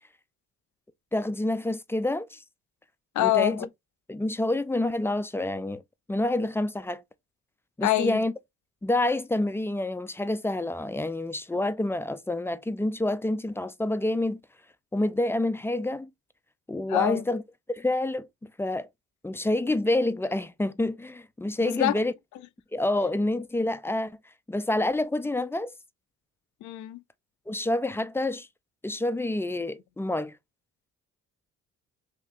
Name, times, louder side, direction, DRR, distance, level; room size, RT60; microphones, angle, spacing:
voice 1, 1.1-2.4 3.2-3.6 4.1-5.8 6.1-7.0 7.8-8.3 8.8-14.4 14.9-16.1 16.7-17.4 17.7-18.3 18.6-18.9 19.2-22.1 22.7-24.2 24.5-25.7 27.5-28.5 28.8-30.3, left 1 dB, 10° left, 0.4 m, -28 dB
voice 2, 3.2-3.7 7.8-8.2 16.9-17.2 21.6-21.9 26.6-27.0, left 14 dB, 70° left, 0.5 m, -25 dB
3.6 x 2.9 x 2.6 m
cardioid pair, 90°, 30 cm